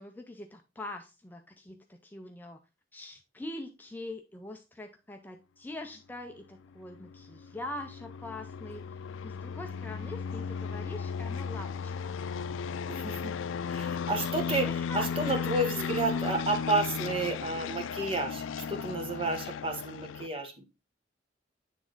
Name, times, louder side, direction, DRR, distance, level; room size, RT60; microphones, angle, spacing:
voice 1, 0.0-2.6 2.9-9.0 9.2-12.2 14.6-15.3, left 1 dB, 10° left, 4 dB, 0.4 m, -43 dB
sound 1, 6.9-20.3, left 6 dB, 90° left, 0.4 m, -35 dB
voice 2, 12.9-13.3 13.7-20.5, right 2 dB, 30° right, 5 dB, 1.2 m, -31 dB
9.1 x 3.5 x 3.8 m, 0.26 s
head